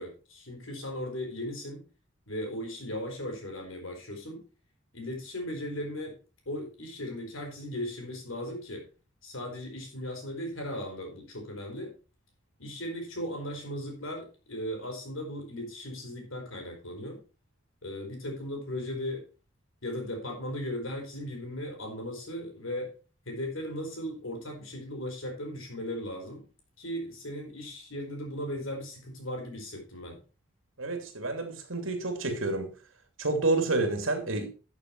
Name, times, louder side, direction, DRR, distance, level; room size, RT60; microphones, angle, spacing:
voice 1, 0.0-1.8 2.3-4.4 4.9-6.1 6.4-8.8 9.2-11.9 12.6-17.2 17.8-19.2 19.8-22.9 23.2-26.5 26.8-30.2, left 1 dB, 85° left, 4.8 m, -37 dB
voice 2, 30.8-32.7 33.2-34.5, right 2 dB, 80° right, 2.7 m, -29 dB
12.0 x 6.8 x 4.6 m
head